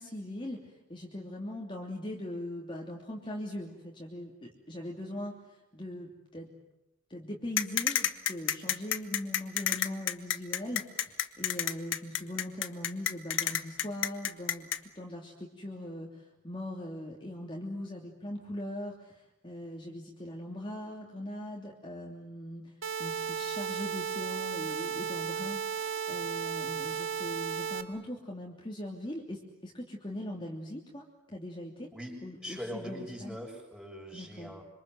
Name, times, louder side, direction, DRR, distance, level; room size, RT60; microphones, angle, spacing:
voice 1, 0.0-6.5 7.1-14.7 14.9-31.9 32.2-33.4 34.1-34.5, left 1 dB, 25° left, -1 dB, 3.0 m, -41 dB
sound 1, 7.6-14.8, left 10 dB, 70° left, 1.5 m, -29 dB
sound 2, 22.8-27.8, right 7 dB, 75° right, 2.0 m, -34 dB
voice 2, 32.4-34.6, equal, 5° right, 0 dB, 6.5 m, -41 dB
26.5 x 26.5 x 7.8 m, 0.95 s
head